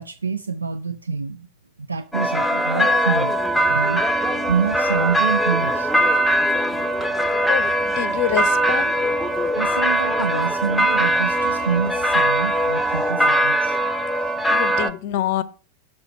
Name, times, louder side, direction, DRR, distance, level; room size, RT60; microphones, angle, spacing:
voice 1, 0.0-1.5 1.9-3.4 3.7-4.1 4.5-5.9 9.5-13.8, right 5 dB, 80° right, 0.4 m, -26 dB
sound 1, 2.1-14.9, right 1 dB, 5° left, 0.6 m, -21 dB
Truck, 3.5-13.1, right 7 dB, 40° right, 2.9 m, -45 dB
voice 2, 7.5-8.9 14.5-15.4, left 11 dB, 50° left, 0.6 m, -26 dB
6.5 x 4.2 x 5.8 m
figure-of-eight pair, 90°, 0 cm